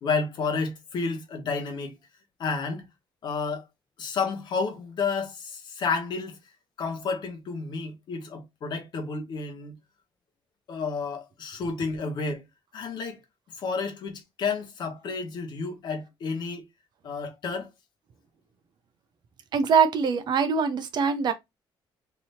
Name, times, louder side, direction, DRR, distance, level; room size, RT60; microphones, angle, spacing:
voice 1, 0.0-2.0 2.4-2.9 3.2-3.6 4.0-6.4 6.8-9.7 10.7-12.4 12.7-13.2 13.6-16.6 17.0-17.7, left 4 dB, 50° left, 1.1 m, -31 dB
voice 2, 19.5-21.3, right 6 dB, 50° right, 0.6 m, -23 dB
3.4 x 2.8 x 4.0 m
cardioid pair, 160°, 9 cm